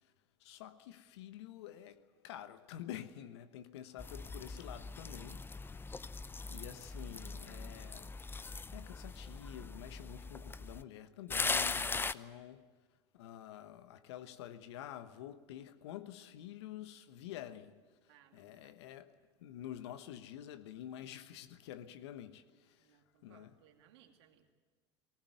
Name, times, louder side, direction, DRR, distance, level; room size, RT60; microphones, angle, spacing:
voice 1, 0.4-5.4 5.7-6.2 6.5-8.2 8.7-12.7 13.1-17.8 18.3-19.1 19.4-23.5, left 11 dB, 75° left, 1.2 m, -49 dB
sound 1, 4.0-10.8 11.3-12.1, left 4 dB, 15° left, 0.6 m, -40 dB
voice 2, 4.5-5.3 18.1-18.7 22.8-24.5, right 10 dB, 70° right, 2.5 m, -66 dB
19.5 x 19.0 x 9.3 m
hypercardioid pair, 80°, 14 cm